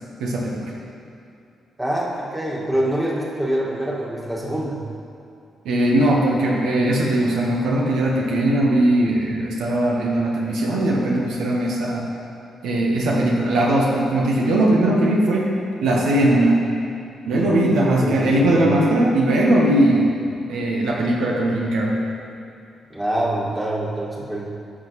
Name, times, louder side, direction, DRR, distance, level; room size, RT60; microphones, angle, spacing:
voice 1, 0.2-0.7 5.6-12.1 12.6-15.5 15.8-16.6 17.3-20.1 20.5-22.0, right 1 dB, 80° right, -2 dB, 1.0 m, -19 dB
voice 2, 1.8-4.8 17.3-18.6 22.9-24.4, right 1 dB, 15° right, -4 dB, 1.8 m, -25 dB
11.0 x 6.2 x 3.1 m, 2.5 s
supercardioid pair, 55°, 0 cm